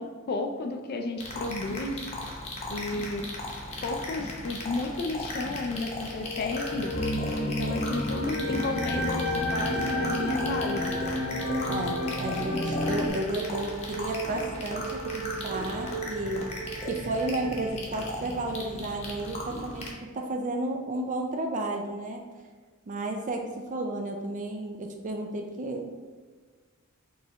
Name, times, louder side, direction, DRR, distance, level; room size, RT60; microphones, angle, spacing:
voice 1, 0.0-2.1 2.7-3.3 3.8-6.9 7.4-11.0, left 2 dB, 50° left, 4 dB, 0.4 m, -32 dB
sound 1, 1.2-19.9, left 2 dB, 30° left, 0.8 m, -37 dB
sound 2, 6.0-17.7, equal, 55° right, 0.8 m, -37 dB
sound 3, 6.9-13.1, equal, 65° left, 0.8 m, -30 dB
voice 2, 11.7-16.5 16.8-22.2 22.9-26.0, right 2 dB, 40° right, 3 dB, 0.4 m, -32 dB
4.4 x 3.2 x 2.9 m, 1.5 s
head